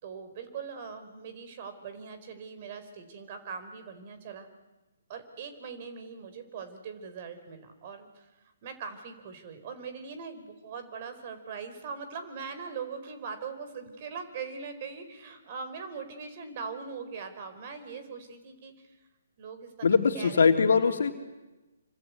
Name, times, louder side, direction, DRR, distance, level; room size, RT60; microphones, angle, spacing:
voice 1, 0.0-4.5 5.1-8.3 8.6-19.0 19.4-19.9 20.1-20.4, right 5 dB, 40° right, 8 dB, 4.6 m, -41 dB
voice 2, 19.8-21.1, left 5 dB, 60° left, 4 dB, 3.1 m, -22 dB
27.5 x 25.5 x 8.4 m, 1.1 s
figure-of-eight pair, 135°, 0 cm